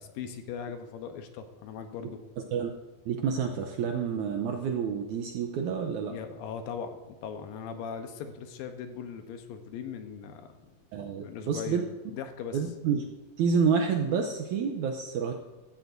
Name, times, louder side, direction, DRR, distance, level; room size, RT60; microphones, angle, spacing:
voice 1, 0.0-2.2 6.1-10.7 11.2-11.8 12.1-12.6, left 7 dB, 80° left, 7 dB, 2.5 m, -39 dB
voice 2, 3.1-6.1 10.9-11.9 12.5-13.0 13.4-15.3, right 6 dB, 80° right, 4 dB, 1.8 m, -28 dB
16.0 x 12.5 x 2.6 m, 1.1 s
omnidirectional pair, 4.2 m